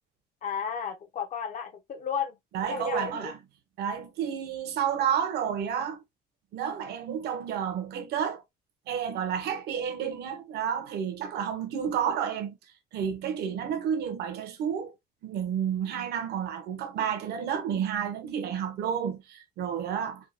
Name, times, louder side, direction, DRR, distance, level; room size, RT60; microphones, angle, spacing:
voice 1, 0.4-2.4 2.7-3.3, left 7 dB, 50° left, 0.8 m, -33 dB
voice 2, 2.5-3.4 3.8-6.0 6.5-8.4 8.9-12.6 12.9-14.9 15.2-20.3, right 8 dB, 75° right, 0.9 m, -30 dB
3.6 x 2.3 x 2.6 m
cardioid pair, 110°, 17 cm